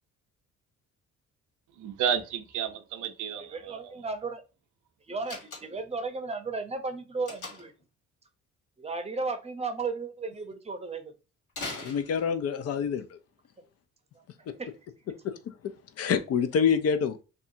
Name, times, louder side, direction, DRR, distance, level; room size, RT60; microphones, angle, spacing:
voice 1, 1.8-3.9, right 8 dB, 80° right, 0.6 m, -32 dB
voice 2, 3.5-4.4 5.1-7.7 8.8-11.1 14.6-14.7, right 3 dB, 20° right, 0.6 m, -34 dB
Slam, 5.2-6.0 7.3-7.8 11.5-12.6, left 3 dB, 85° left, 1.6 m, -40 dB
voice 3, 11.7-13.2 16.0-17.2, left 6 dB, 55° left, 0.5 m, -26 dB
2.7 x 2.3 x 2.6 m
cardioid pair, 90°, 30 cm